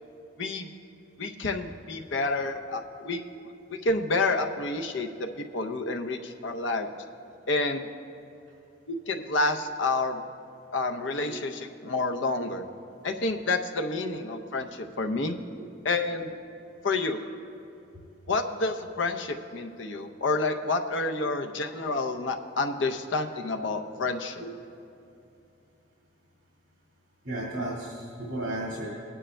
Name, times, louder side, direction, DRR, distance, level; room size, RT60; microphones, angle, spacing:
voice 1, 0.4-0.7 1.2-3.2 3.7-6.9 7.5-7.8 8.9-10.2 10.7-12.6 13.0-15.4 15.8-16.3 16.8-17.2 18.3-24.4, left 3 dB, 70° left, 5 dB, 0.7 m, -29 dB
voice 2, 27.2-28.9, right 1 dB, 75° right, -5 dB, 1.9 m, -34 dB
19.0 x 9.9 x 2.2 m, 2.7 s
head